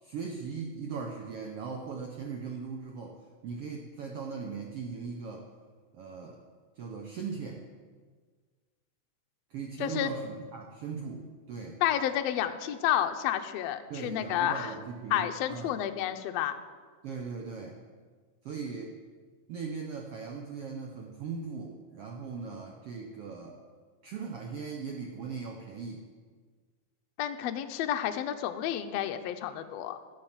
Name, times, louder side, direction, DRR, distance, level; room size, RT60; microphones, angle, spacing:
voice 1, 0.0-5.5 5.9-6.4 6.8-7.6 9.5-11.8 13.9-15.8 17.0-17.8 18.4-18.9 19.5-23.6 24.0-26.0, right 5 dB, 70° right, 1 dB, 1.4 m, -39 dB
voice 2, 9.8-10.1 11.8-14.7 15.1-16.5 27.2-30.0, left 11 dB, 85° left, 8 dB, 1.4 m, -30 dB
11.5 x 7.6 x 7.3 m, 1.5 s
omnidirectional pair, 3.8 m